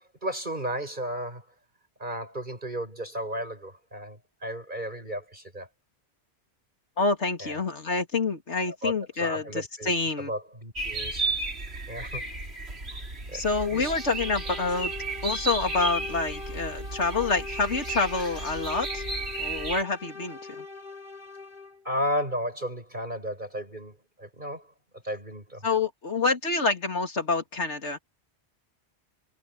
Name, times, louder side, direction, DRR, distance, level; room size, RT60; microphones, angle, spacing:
voice 1, 0.0-1.5 2.0-5.7 7.4-7.6 8.8-11.2 11.9-12.2 12.9-13.0 13.3-13.4 13.7-13.9 21.8-24.7 25.0-25.6, equal, 45° right, 7.0 m, -34 dB
voice 2, 7.0-10.3 13.3-14.9 15.2-19.0 19.4-20.6 25.6-28.0, left 3 dB, 80° left, 2.9 m, -27 dB
sound 1, 10.8-19.8, right 2 dB, 65° right, 3.8 m, -34 dB
sound 2, 13.5-21.9, left 4 dB, 45° left, 6.4 m, -42 dB
omnidirectional pair, 1.2 m